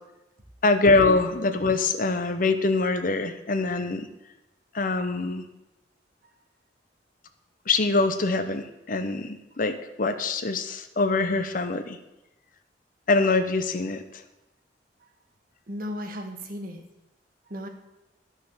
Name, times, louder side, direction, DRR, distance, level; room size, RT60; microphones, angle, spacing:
voice 1, 0.6-4.1 4.7-5.4 7.7-12.0 13.1-14.2, left 3 dB, 50° left, 9 dB, 0.9 m, -24 dB
voice 2, 15.7-16.8 17.5-17.7, equal, 50° right, 4 dB, 1.6 m, -35 dB
12.0 x 6.5 x 6.9 m, 0.96 s
head